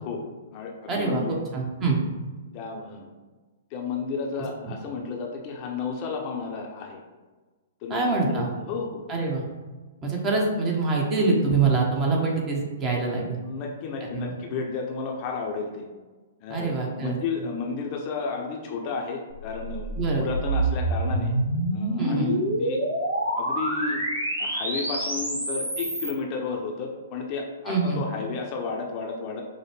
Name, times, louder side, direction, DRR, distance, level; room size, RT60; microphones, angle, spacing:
voice 1, 0.0-1.4 2.5-3.1 3.7-7.0 7.8-8.0 8.3-9.0 13.4-15.9 16.4-21.3 21.7-22.8 23.3-24.0 24.4-29.4, left 4 dB, 35° left, 1 dB, 0.6 m, -32 dB
voice 2, 0.9-1.2 1.5-2.0 7.9-8.5 9.1-9.4 10.0-13.4 14.1-14.3 16.5-17.2 20.0-20.3 22.0-22.3 27.7-28.0, right 3 dB, 25° right, -1 dB, 0.8 m, -25 dB
sound 1, 19.3-26.1, right 1 dB, 80° right, 1.0 m, -27 dB
5.0 x 2.1 x 3.2 m, 1.3 s
figure-of-eight pair, 115°, 0 cm